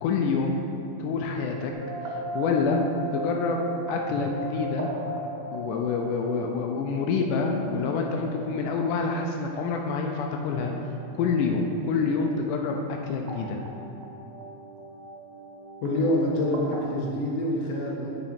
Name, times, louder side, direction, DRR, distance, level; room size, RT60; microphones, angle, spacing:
voice 1, 0.0-0.6 1.0-1.7 2.1-2.8 3.1-3.6 3.9-4.9 5.5-10.7 11.2-13.6, left 4 dB, 85° left, 2 dB, 2.2 m, -27 dB
sound 1, 1.7-16.8, right 1 dB, 80° right, 2.5 m, -38 dB
voice 2, 15.8-18.1, left 1 dB, 60° left, -3 dB, 2.2 m, -26 dB
8.7 x 5.8 x 4.3 m, 2.7 s
omnidirectional pair, 3.6 m